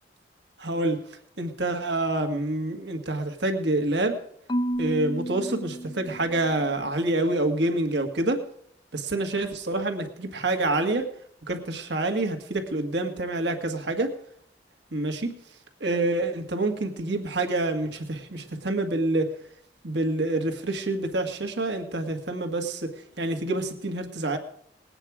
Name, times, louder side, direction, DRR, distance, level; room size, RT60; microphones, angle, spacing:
voice 1, 0.6-1.0 1.4-4.2 4.8-8.4 8.9-11.1 11.5-14.1 14.9-15.4 15.8-19.3 19.8-22.9 23.2-24.4, right 2 dB, 70° right, 5 dB, 1.8 m, -27 dB
Marimba xylophone / Wood, 4.5-6.7, equal, 25° left, 0.6 m, -31 dB
20.0 x 8.9 x 4.9 m, 0.68 s
head